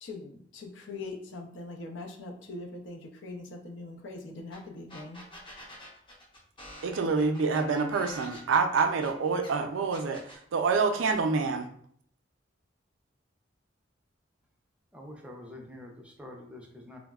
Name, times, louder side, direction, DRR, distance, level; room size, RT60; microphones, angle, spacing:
voice 1, 0.0-5.2, left 2 dB, 70° left, 2 dB, 0.5 m, -42 dB
sound 1, 4.5-4.6 4.9-9.5 9.9-10.4, left 1 dB, 25° left, 0.7 m, -47 dB
voice 2, 6.8-10.2 10.5-11.7, right 4 dB, 85° right, 6 dB, 0.4 m, -26 dB
voice 3, 14.9-17.0, left 1 dB, 5° right, 0 dB, 0.4 m, -46 dB
3.9 x 2.0 x 2.2 m, 0.63 s
head